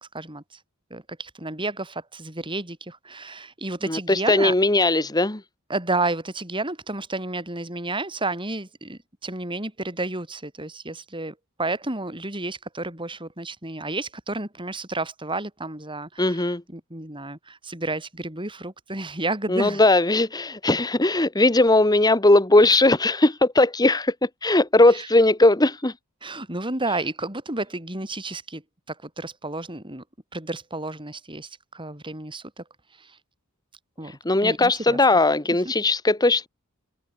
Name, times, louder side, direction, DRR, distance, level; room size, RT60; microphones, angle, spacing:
voice 1, 0.1-0.6 0.9-4.5 5.7-19.8 24.9-25.1 26.2-28.6 28.9-30.0 30.3-32.6 33.0-33.2 34.0-35.0, right 2 dB, 25° right, 7.1 m, -31 dB
voice 2, 3.9-5.4 16.2-16.6 19.5-25.9 34.2-36.5, left 2 dB, 20° left, 1.4 m, -19 dB
head